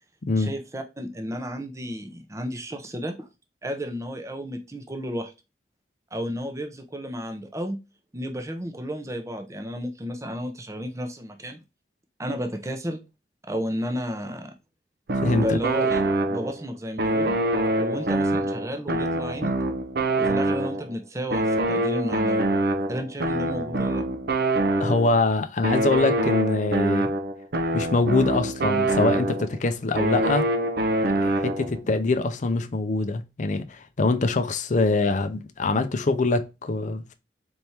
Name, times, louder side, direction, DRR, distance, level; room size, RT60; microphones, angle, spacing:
voice 1, 0.4-3.3 3.6-5.3 6.1-7.8 8.1-11.6 12.2-13.0 13.5-14.5 15.3-17.4 17.8-19.5 20.2-22.4 22.9-24.2, equal, 20° right, 0.7 m, -32 dB
sound 1, 15.1-16.6 17.0-20.9 21.3-25.2 25.6-29.6 30.0-31.8, right 1 dB, 60° right, 0.7 m, -25 dB
voice 2, 15.2-15.6 24.8-27.1 27.7-30.5 31.2-37.1, left 3 dB, 45° left, 0.5 m, -24 dB
4.4 x 3.4 x 2.8 m
head